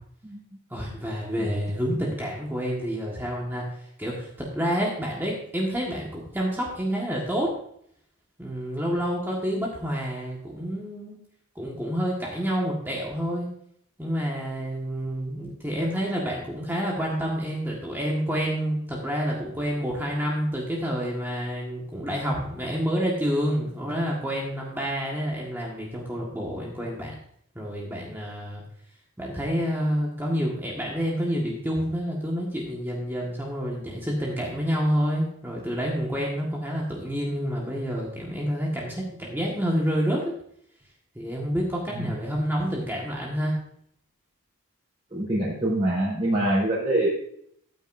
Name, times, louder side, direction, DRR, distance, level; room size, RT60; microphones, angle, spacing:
voice 1, 0.7-7.6 8.4-11.2 11.5-13.5 14.0-27.1 27.5-28.6 29.2-40.4 41.1-43.5, equal, 10° right, -3 dB, 1.7 m, -28 dB
voice 2, 45.1-47.1, right 1 dB, 25° right, -9 dB, 4.7 m, -25 dB
13.5 x 9.3 x 2.7 m, 0.66 s
head